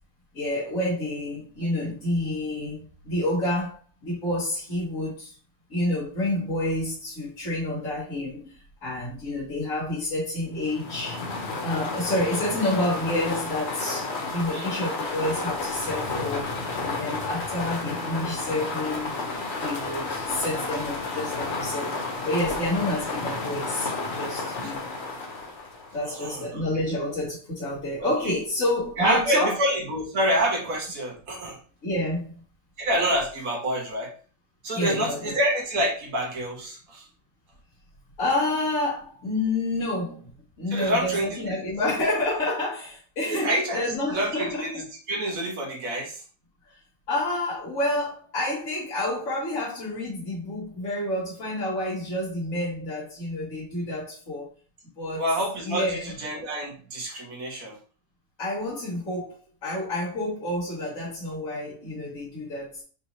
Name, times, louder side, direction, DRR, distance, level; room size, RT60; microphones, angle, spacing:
voice 1, 0.3-5.3 5.7-11.2 11.6-16.5 16.8-19.2 19.6-22.0 22.2-23.9 24.1-24.9 25.9-29.5 31.8-32.4 34.7-35.4 38.2-40.3 40.6-44.7 47.1-54.5 55.0-55.2 55.6-56.1 58.4-59.4 59.6-62.8, left 1 dB, 75° left, -8 dB, 2.4 m, -29 dB
sound 1, 10.6-26.1, left 3 dB, 55° left, 1.1 m, -31 dB
voice 2, 26.1-26.6 28.0-28.1 29.0-31.6 32.8-34.1 34.6-37.0 40.7-41.6 43.3-46.2 55.2-57.8, right 1 dB, 85° right, -1 dB, 1.6 m, -27 dB
5.2 x 3.1 x 2.7 m, 0.40 s
omnidirectional pair, 1.4 m